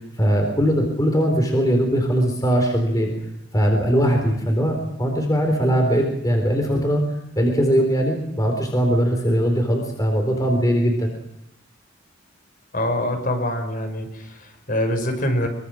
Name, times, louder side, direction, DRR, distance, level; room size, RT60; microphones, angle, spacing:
voice 1, 0.2-3.1 3.5-7.0 7.4-11.2, equal, 20° left, 3 dB, 4.2 m, -20 dB
voice 2, 12.7-15.5, left 1 dB, 45° left, 6 dB, 6.1 m, -24 dB
25.0 x 24.0 x 6.5 m, 0.81 s
head